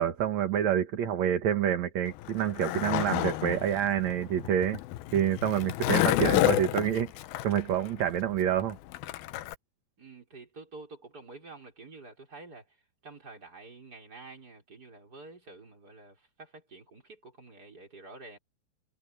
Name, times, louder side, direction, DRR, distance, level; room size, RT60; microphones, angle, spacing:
voice 1, 0.0-4.8 5.1-7.1 7.4-8.8, right 9 dB, 55° right, 2.6 m, -27 dB
Skateboard, 2.1-9.6, left 15 dB, 85° left, 2.7 m, -30 dB
voice 2, 10.0-12.8 13.0-18.4, right 3 dB, 25° right, 5.9 m, -49 dB
omnidirectional pair, 4.2 m